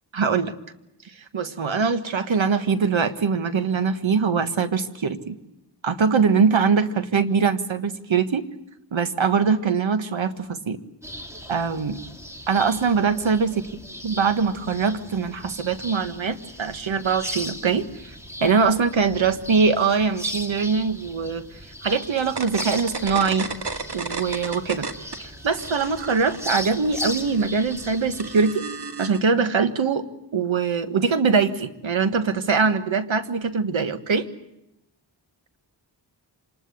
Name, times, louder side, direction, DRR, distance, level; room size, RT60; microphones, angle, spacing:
voice 1, 0.1-0.5 1.3-5.4 5.8-8.5 8.9-10.8 11.5-12.0 12.5-13.7 14.0-18.1 18.4-21.4 21.8-23.5 23.9-24.9 25.2-28.6 29.0-30.1 30.3-34.3, right 5 dB, 90° right, 10 dB, 1.6 m, -22 dB
sound 1, 11.0-28.5, left 1 dB, 5° right, 2.6 m, -38 dB
sound 2, 22.2-25.2 25.5-29.2, right 4 dB, 60° right, 2.1 m, -34 dB
26.0 x 20.5 x 8.4 m, 0.86 s
wide cardioid pair, 90°, 45 cm